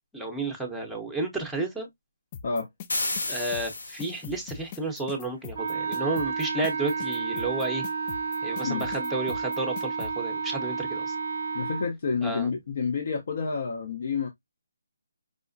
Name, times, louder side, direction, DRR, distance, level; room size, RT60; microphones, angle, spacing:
voice 1, 0.1-1.9 3.3-7.9 8.4-11.1 12.2-12.5, right 2 dB, ahead, 0.8 m, -31 dB
sound 1, 2.3-10.1, left 8 dB, 25° left, 0.3 m, -41 dB
sound 2, 2.9-4.4, left 2 dB, 80° left, 0.9 m, -32 dB
Wind instrument woodwind instrument, 5.5-11.9, right 5 dB, 60° right, 0.5 m, -31 dB
voice 2, 11.5-14.3, left 5 dB, 50° left, 0.7 m, -29 dB
4.9 x 2.1 x 2.5 m
hypercardioid pair, 155°, 0 cm